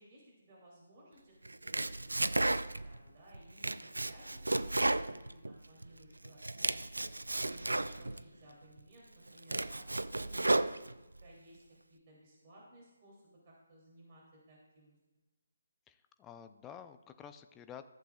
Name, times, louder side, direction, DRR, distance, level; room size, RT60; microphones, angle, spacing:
voice 1, 0.0-7.1 7.4-9.8 10.1-10.9 11.2-11.6 11.9-14.9, right 1 dB, 40° right, -4 dB, 2.9 m, -59 dB
Domestic sounds home sounds, 1.4-3.0 3.3-5.9 6.2-8.2 8.8-8.9 9.3-11.2, right 2 dB, 85° right, 0.4 m, -33 dB
voice 2, 7.6-8.2 15.9-17.8, left 8 dB, 15° left, 9 dB, 0.5 m, -51 dB
14.5 x 7.5 x 2.4 m, 1.1 s
figure-of-eight pair, 145°, 0 cm